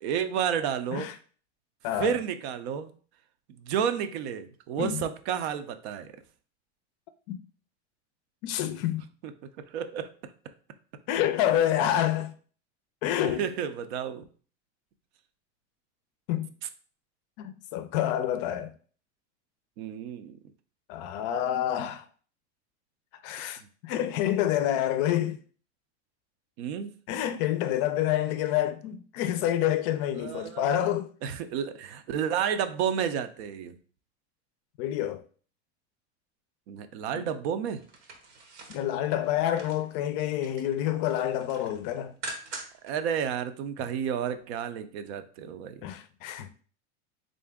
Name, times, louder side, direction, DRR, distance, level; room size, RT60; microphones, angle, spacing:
voice 1, 0.0-1.1 2.0-2.9 3.6-6.1 9.7-10.1 13.2-14.2 19.8-20.3 26.6-26.9 30.1-30.7 31.2-33.8 36.7-37.8 42.8-45.8, right 8 dB, 70° right, 0.5 m, -31 dB
voice 2, 8.4-9.0 11.1-12.3 13.0-13.4 16.3-16.5 17.4-18.7 20.9-22.0 23.2-25.4 27.1-31.1 34.8-35.2 38.7-42.1 45.8-46.5, left 11 dB, 50° left, 0.4 m, -28 dB
sound 1, 37.8-39.9 40.2-40.8 41.1-42.9 43.3-43.4, right 3 dB, 85° right, 1.0 m, -43 dB
3.7 x 2.6 x 3.5 m
supercardioid pair, 130°, 35 cm